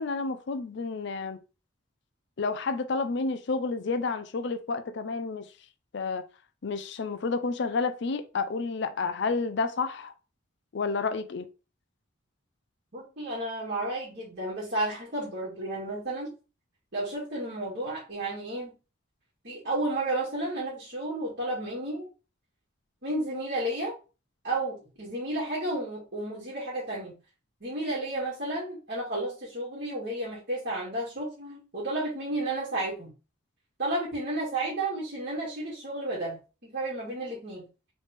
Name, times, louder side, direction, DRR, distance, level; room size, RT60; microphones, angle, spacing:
voice 1, 0.0-1.4 2.4-5.5 5.9-6.2 6.6-10.1 10.7-11.5, left 4 dB, 60° left, 0.5 m, -30 dB
voice 2, 12.9-16.3 16.9-18.8 19.4-22.1 23.0-23.9 24.4-27.1 27.6-33.1 33.8-37.6, right 1 dB, 50° right, 2.1 m, -32 dB
4.0 x 3.5 x 3.4 m
head